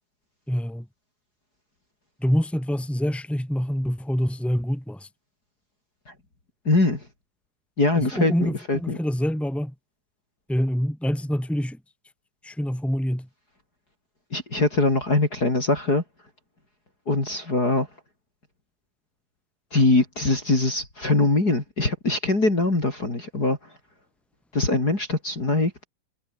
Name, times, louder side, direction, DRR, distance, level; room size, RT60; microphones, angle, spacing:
voice 1, 0.5-0.9 2.2-5.1 7.9-9.7 10.5-11.8 12.4-13.3, equal, ahead, 5.1 m, -26 dB
voice 2, 6.7-7.0 7.8-9.0 14.3-16.0 17.1-17.9 19.7-23.6 24.5-25.7, left 2 dB, 25° left, 5.2 m, -22 dB
omnidirectional pair, 3.8 m